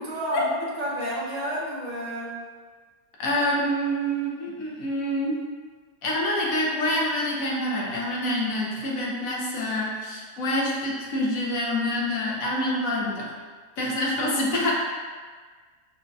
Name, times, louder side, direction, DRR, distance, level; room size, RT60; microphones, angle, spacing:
voice 1, 0.0-2.4, right 1 dB, 45° right, -5 dB, 0.5 m, -31 dB
voice 2, 3.2-5.4 6.0-13.3 13.8-14.7, left 1 dB, 70° left, -3 dB, 1.2 m, -26 dB
6.0 x 2.2 x 2.6 m, 1.5 s
omnidirectional pair, 1.5 m